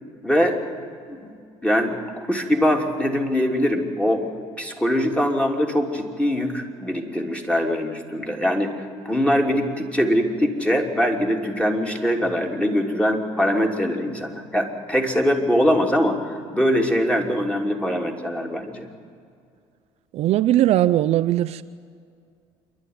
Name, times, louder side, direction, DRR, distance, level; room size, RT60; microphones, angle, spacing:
voice 1, 0.2-0.6 1.1-1.3 1.6-4.2 4.6-8.7 9.0-18.9, equal, 10° left, 1 dB, 3.1 m, -22 dB
voice 2, 20.1-21.6, right 13 dB, 60° right, 12 dB, 0.5 m, -19 dB
27.5 x 11.5 x 9.6 m, 2.3 s
supercardioid pair, 100°, 12 cm